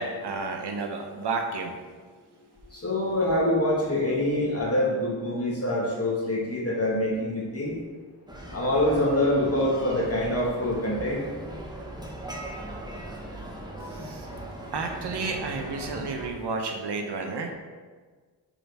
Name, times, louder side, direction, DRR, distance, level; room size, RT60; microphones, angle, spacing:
voice 1, 0.0-1.7 13.9-14.3 14.7-17.5, right 3 dB, 70° right, 3 dB, 0.9 m, -31 dB
voice 2, 2.7-7.7 8.5-11.2, left 1 dB, 35° left, -5 dB, 1.8 m, -25 dB
sound 1, 8.3-16.3, right 1 dB, 10° right, 1.2 m, -39 dB
6.1 x 4.5 x 3.5 m, 1.5 s
cardioid pair, 50°, 42 cm